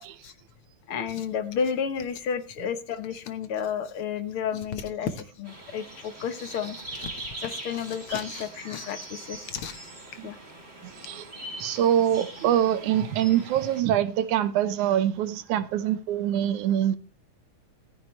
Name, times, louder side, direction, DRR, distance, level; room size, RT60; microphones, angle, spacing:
voice 1, 0.9-9.8 10.2-10.4, left 7 dB, 55° left, 1.7 m, -32 dB
sound 1, 5.5-13.8, right 2 dB, 20° right, 3.8 m, -42 dB
voice 2, 10.8-11.3 11.6-17.0, right 10 dB, 85° right, 2.3 m, -24 dB
15.0 x 13.5 x 3.2 m
omnidirectional pair, 3.3 m